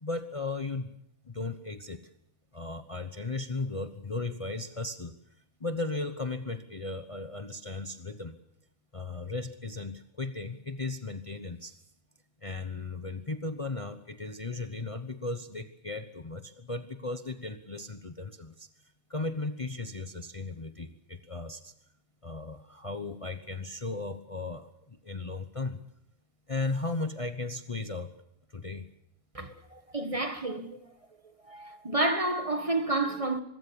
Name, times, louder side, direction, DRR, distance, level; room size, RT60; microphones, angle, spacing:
voice 1, 0.0-0.9 1.2-2.1 2.5-5.2 5.6-8.4 8.9-11.8 12.4-18.7 19.1-21.7 22.2-25.8 26.5-28.1 28.5-28.9, left 3 dB, 30° left, 1.1 m, -36 dB
voice 2, 29.3-30.8 31.5-33.4, right 2 dB, 25° right, 1.8 m, -30 dB
25.0 x 22.0 x 7.1 m
omnidirectional pair, 1.3 m